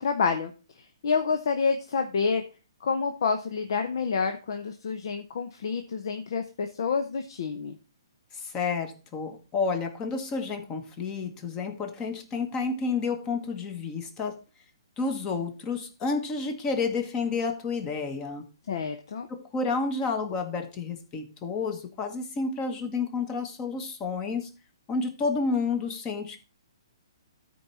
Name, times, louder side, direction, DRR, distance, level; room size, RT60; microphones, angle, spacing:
voice 1, 0.0-2.4 2.8-7.8 18.7-19.3, left 5 dB, 60° left, 1.0 m, -28 dB
voice 2, 8.3-14.4 15.0-18.5 19.3-24.5 24.9-26.4, left 4 dB, 25° left, 1.5 m, -30 dB
13.0 x 4.7 x 4.1 m
hypercardioid pair, 140°, 3 cm